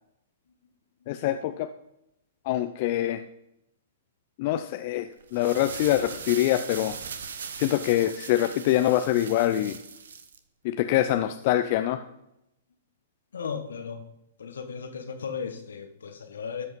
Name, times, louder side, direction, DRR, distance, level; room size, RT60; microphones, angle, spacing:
voice 1, 1.1-1.7 2.5-3.2 4.4-7.0 7.5-9.8 10.6-12.0, left 13 dB, 50° left, 9 dB, 0.6 m, -25 dB
sound 1, 5.2-10.4, right 6 dB, 75° right, 1.1 m, -40 dB
voice 2, 13.3-14.0 14.4-16.7, left 6 dB, 80° left, 6 dB, 1.7 m, -36 dB
13.0 x 5.5 x 5.3 m, 0.83 s
hypercardioid pair, 125°, 0 cm